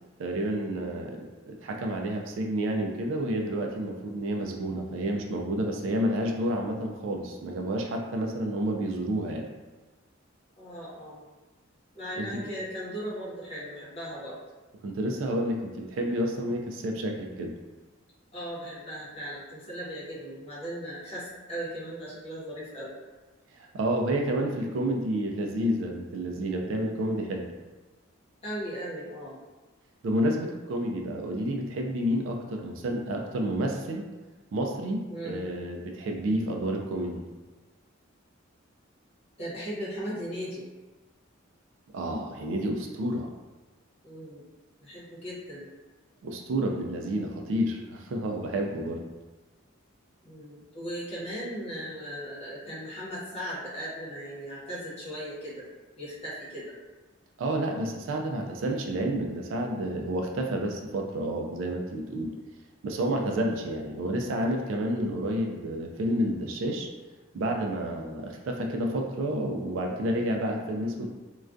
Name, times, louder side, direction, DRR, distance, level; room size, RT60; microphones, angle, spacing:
voice 1, 0.2-9.5 12.2-12.4 14.8-17.5 23.6-27.5 30.0-34.1 34.5-37.2 41.9-43.3 46.2-49.0 57.4-62.3 62.8-66.9 67.3-71.1, right 1 dB, 65° right, 2 dB, 0.3 m, -30 dB
voice 2, 10.6-11.2 11.9-14.4 18.3-22.9 28.4-29.4 35.1-35.5 39.4-40.7 44.0-44.4 44.8-45.7 50.2-55.7 56.0-56.7, equal, 30° left, -8 dB, 0.8 m, -37 dB
2.3 x 2.2 x 2.4 m, 1.2 s
head